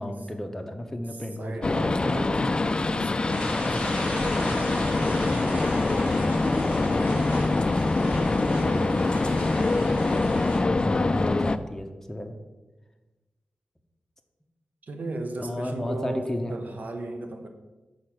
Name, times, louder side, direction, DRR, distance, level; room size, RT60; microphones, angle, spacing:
voice 1, 0.0-2.2 9.8-12.4 15.4-16.5, left 1 dB, 10° left, 4 dB, 0.7 m, -34 dB
voice 2, 1.4-4.1 4.4-9.8 14.8-17.5, right 2 dB, 60° right, 5 dB, 0.9 m, -39 dB
sound 1, 1.6-11.6, left 3 dB, 30° left, 0.3 m, -24 dB
sound 2, 3.3-10.6, equal, 85° right, 2.7 m, -37 dB
6.6 x 4.3 x 6.0 m, 1.2 s
wide cardioid pair, 115°, 3 cm